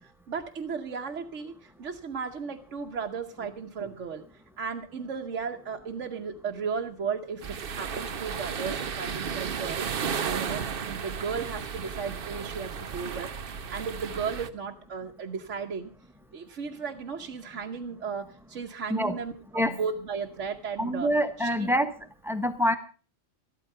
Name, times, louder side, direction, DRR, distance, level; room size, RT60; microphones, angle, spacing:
voice 1, 0.0-4.2 4.6-15.9 16.3-21.1 21.4-21.7, right 5 dB, 70° right, 1 dB, 1.3 m, -35 dB
sound 1, 7.4-14.5, right 6 dB, 50° right, 0.9 m, -34 dB
voice 2, 20.8-22.0 22.2-22.7, equal, ahead, 8 dB, 1.2 m, -26 dB
14.5 x 12.5 x 5.5 m, 0.38 s
omnidirectional pair, 1.3 m